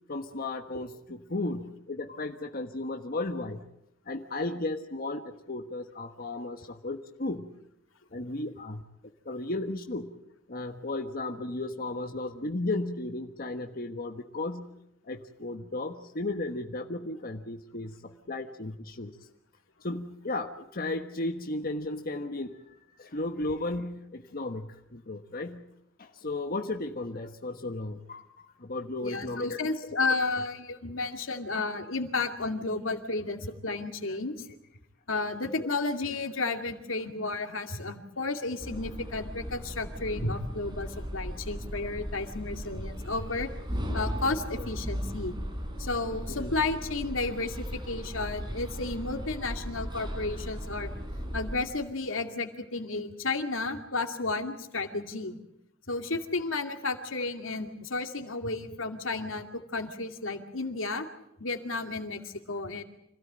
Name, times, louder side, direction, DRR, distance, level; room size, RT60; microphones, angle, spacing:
voice 1, 0.1-3.6 4.1-7.5 8.1-8.8 9.2-10.1 10.5-14.7 15.0-19.1 19.8-22.5 23.0-25.6 26.0-28.3 28.6-29.6 35.6-35.7 44.6-44.7 46.3-46.5, left 2 dB, 50° left, 5 dB, 1.3 m, -34 dB
voice 2, 29.0-34.5 35.1-43.5 43.9-45.4 45.8-50.9 51.3-55.4 55.9-61.1 61.4-62.8, left 3 dB, 85° left, 5 dB, 2.5 m, -32 dB
sound 1, 38.6-51.6, equal, 25° right, 4.1 m, -37 dB
26.5 x 16.5 x 8.8 m, 0.83 s
head